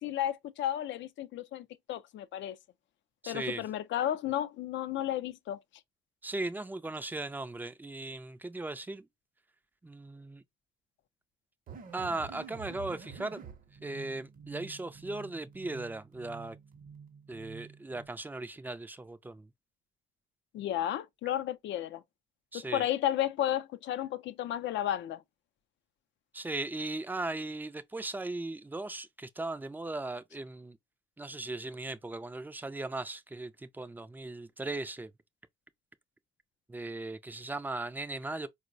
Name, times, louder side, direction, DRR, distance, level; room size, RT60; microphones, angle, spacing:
voice 1, 0.0-2.6 3.3-5.6 20.5-22.0 22.7-25.2, left 11 dB, 70° left, 0.4 m, -33 dB
voice 2, 3.2-3.7 6.2-9.1 9.8-10.4 11.9-13.4 13.8-16.6 17.3-19.5 22.5-22.8 26.3-30.8 31.2-35.1 36.7-38.5, right 2 dB, 10° right, 0.3 m, -38 dB
sound 1, 11.7-18.1, right 6 dB, 45° right, 0.6 m, -48 dB
4.3 x 2.0 x 2.5 m
cardioid pair, 90°, 20 cm